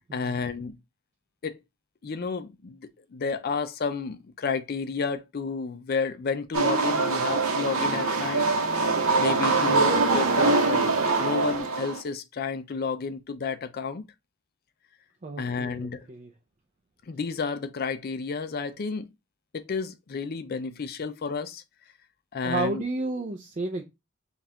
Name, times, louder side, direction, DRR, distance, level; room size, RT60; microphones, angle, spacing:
voice 1, 0.1-0.8 1.4-1.6 2.0-2.8 3.1-8.5 9.2-14.0 15.4-16.1 17.1-19.1 19.5-21.6 22.3-22.8, left 5 dB, 45° left, 0.4 m, -31 dB
sound 1, 6.5-12.0, right 3 dB, 70° right, 0.9 m, -23 dB
voice 2, 15.2-16.3 22.4-23.8, right 2 dB, 35° right, 0.4 m, -32 dB
5.1 x 2.4 x 2.8 m
head